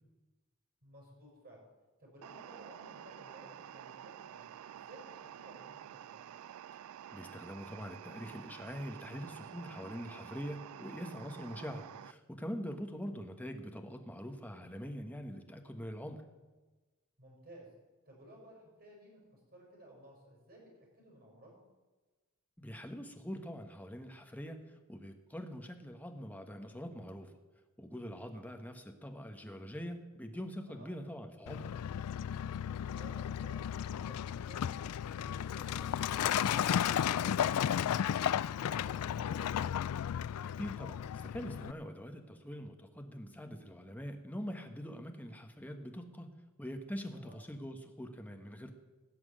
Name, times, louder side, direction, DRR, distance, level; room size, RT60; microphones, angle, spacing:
voice 1, 0.8-1.6 2.0-4.4 4.7-6.2 11.6-11.9 17.2-17.7 18.0-21.6 28.3-28.4 30.7-30.9 32.9-33.7 34.1-39.5 47.1-47.4, right 1 dB, 45° right, -3 dB, 5.3 m, -56 dB
sound 1, 2.2-12.1, right 10 dB, 75° right, 0.3 m, -50 dB
voice 2, 7.1-16.3 22.6-27.3 27.8-31.7 40.6-46.3 46.6-48.7, equal, 5° left, 5 dB, 1.3 m, -44 dB
Truck, 31.5-41.7, left 9 dB, 85° left, 0.3 m, -34 dB
16.5 x 6.1 x 8.7 m, 1.2 s
head